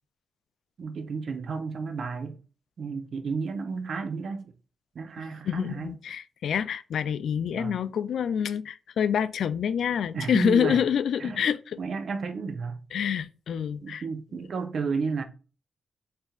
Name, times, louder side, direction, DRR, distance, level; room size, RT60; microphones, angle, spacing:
voice 1, 0.8-2.4 2.8-4.5 4.9-5.9 7.5-7.8 10.1-10.8 11.2-11.4 11.8-12.8 13.8-15.2, right 5 dB, 60° right, 0.7 m, -32 dB
voice 2, 5.2-11.8 12.9-14.0, left 8 dB, 85° left, 0.3 m, -27 dB
4.4 x 3.3 x 2.4 m
cardioid pair, 100°, 0 cm